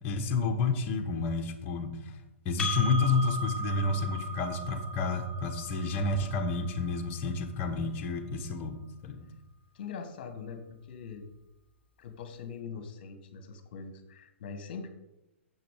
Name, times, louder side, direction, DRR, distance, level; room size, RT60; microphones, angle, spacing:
voice 1, 0.0-2.1 2.4-8.7 9.0-9.3, left 3 dB, 30° left, 5 dB, 1.3 m, -30 dB
Percussion, 2.6-7.4, equal, 15° left, 2.0 m, -38 dB
voice 2, 9.7-11.2 12.0-14.9, left 5 dB, 45° left, 8 dB, 1.5 m, -42 dB
9.3 x 7.2 x 5.0 m, 0.94 s
figure-of-eight pair, 110°, 7 cm